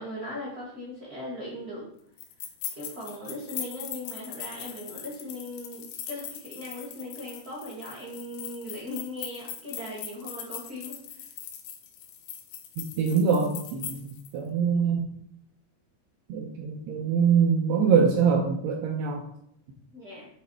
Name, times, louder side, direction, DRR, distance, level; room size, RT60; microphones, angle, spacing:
voice 1, 0.0-1.8 2.7-11.0 19.9-20.3, left 1 dB, 45° right, -6 dB, 1.1 m, -38 dB
sound 1, 2.2-14.3, left 9 dB, 80° left, 2.7 m, -40 dB
voice 2, 12.8-15.1 16.3-19.2, right 6 dB, 75° right, -1 dB, 2.6 m, -24 dB
9.0 x 3.4 x 4.8 m, 0.73 s
omnidirectional pair, 5.2 m